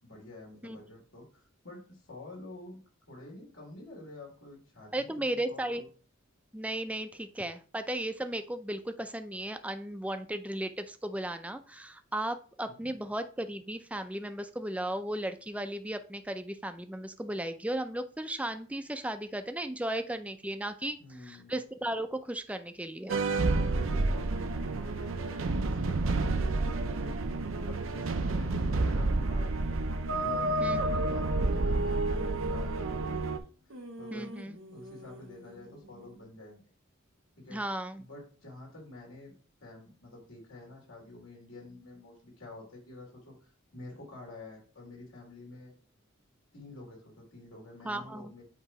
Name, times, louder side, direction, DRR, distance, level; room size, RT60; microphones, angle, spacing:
voice 1, 0.0-2.8 3.1-5.8 12.6-13.1 21.0-21.6 23.6-25.3 25.7-27.2 27.7-29.8 30.1-33.2 34.0-34.3 34.7-36.6 37.4-37.6 37.9-39.3 39.6-45.7 46.5-48.4, left 2 dB, 80° left, -1 dB, 2.9 m, -49 dB
voice 2, 4.9-5.8 6.5-23.2 30.6-31.0 34.1-34.6 37.5-38.0 47.8-48.3, right 1 dB, 5° right, 8 dB, 0.5 m, -35 dB
sound 1, 23.1-33.4, right 2 dB, 75° right, 0.6 m, -29 dB
sound 2, 30.2-30.9 31.5-33.3 33.7-36.2, right 1 dB, 90° right, 1.6 m, -47 dB
8.2 x 3.0 x 4.7 m, 0.40 s
head